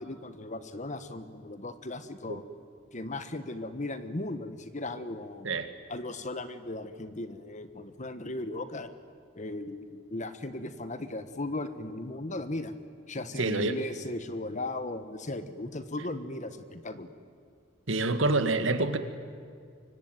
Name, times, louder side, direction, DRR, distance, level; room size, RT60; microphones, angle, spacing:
voice 1, 0.0-2.4 2.9-5.5 5.9-8.9 9.3-12.7 13.1-17.1, left 2 dB, 40° left, 11 dB, 1.4 m, -37 dB
voice 2, 13.4-13.8 17.9-19.0, right 2 dB, 75° right, 9 dB, 1.8 m, -27 dB
25.0 x 24.0 x 9.2 m, 2.1 s
head